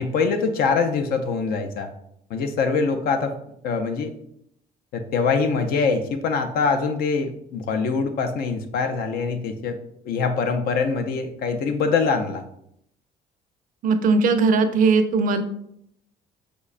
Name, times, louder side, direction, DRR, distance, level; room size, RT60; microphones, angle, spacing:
voice 1, 0.0-1.9 2.3-3.3 3.6-4.1 4.9-9.8 10.1-12.4, left 4 dB, 65° left, 6 dB, 0.4 m, -23 dB
voice 2, 13.8-15.4, right 4 dB, 55° right, 8 dB, 0.4 m, -19 dB
5.0 x 2.2 x 2.4 m, 0.75 s
cardioid pair, 110°, 17 cm